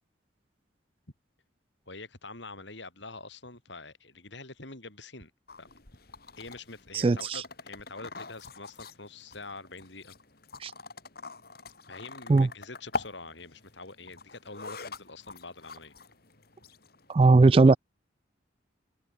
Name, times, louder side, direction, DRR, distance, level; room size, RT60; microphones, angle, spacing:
voice 1, 1.9-5.3 5.6-5.7 6.4-10.1 11.9-15.9 17.6-17.7, left 3 dB, 65° left, 4.6 m, -45 dB
sound 1, 5.5-17.1, left 3 dB, 50° left, 2.8 m, -44 dB
voice 2, 6.9-7.4 10.6-10.7 12.3-12.5 17.1-17.8, right 3 dB, 30° right, 0.3 m, -19 dB
head